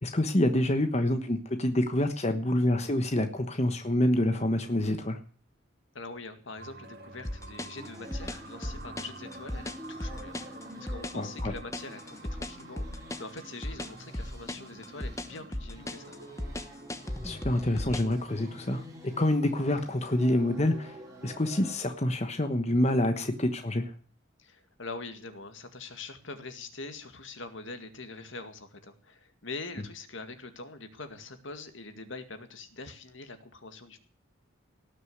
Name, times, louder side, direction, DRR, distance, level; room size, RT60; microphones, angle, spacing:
voice 1, 0.0-5.2 11.1-11.5 17.2-18.8 19.2-21.0 21.2-23.9, left 1 dB, 35° left, 7 dB, 1.2 m, -27 dB
voice 2, 5.9-16.2 24.4-34.0, left 3 dB, 70° left, 8 dB, 2.1 m, -44 dB
sound 1, 6.6-18.6, right 3 dB, 50° right, 1.9 m, -50 dB
sound 2, 7.2-18.2, left 1 dB, 15° left, 1.0 m, -36 dB
sound 3, 7.8-21.8, equal, 15° right, 5.5 m, -48 dB
18.0 x 6.8 x 8.0 m, 0.42 s
head